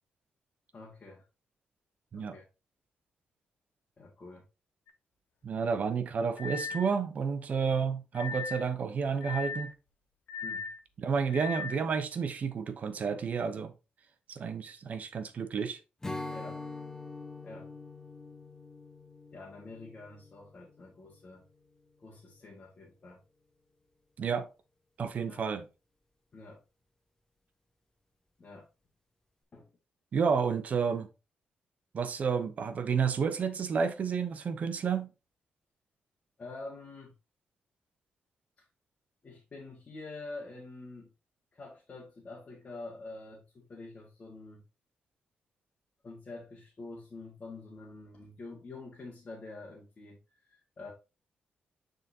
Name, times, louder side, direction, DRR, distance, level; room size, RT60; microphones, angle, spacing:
voice 1, 0.7-1.2 2.1-2.4 4.0-4.4 6.7-6.8 10.4-10.7 14.6-14.7 16.3-16.6 17.4-17.7 19.3-21.4 22.0-23.2 25.2-25.4 26.3-26.6 28.4-28.7 29.5-29.7 36.4-37.1 38.6-38.7 39.2-41.1 41.5-44.6 46.0-50.2 50.5-50.9, left 3 dB, 35° left, 1.7 m, -47 dB
sound 1, 4.9-5.0 6.4-6.9 8.1-8.7 9.2-9.7 10.3-10.8 11.3-11.8, left 5 dB, 65° left, 0.9 m, -38 dB
voice 2, 5.4-9.7 11.0-13.7 14.3-15.8 24.2-24.5 25.0-25.7 30.1-31.1 31.9-35.1, right 6 dB, 50° right, 0.8 m, -31 dB
Strum, 16.0-21.4, left 3 dB, 15° left, 1.2 m, -44 dB
9.2 x 3.9 x 2.8 m
cardioid pair, 125°, 3 cm